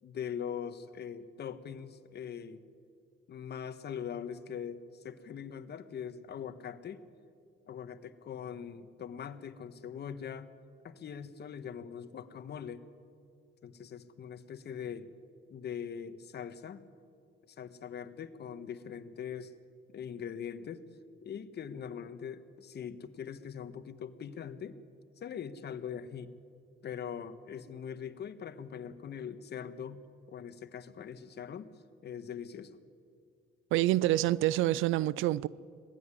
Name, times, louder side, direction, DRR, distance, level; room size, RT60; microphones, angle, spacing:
voice 1, 0.0-2.6 3.3-7.0 7.7-10.5 10.8-12.8 13.6-15.1 15.5-16.9 17.5-19.5 19.9-20.8 21.2-24.8 25.2-26.3 26.8-31.7 32.0-32.8, left 8 dB, 55° left, 1.3 m, -42 dB
voice 2, 33.7-35.5, right 15 dB, 85° right, 0.4 m, -27 dB
21.0 x 15.5 x 9.8 m
cardioid pair, 90°, 20 cm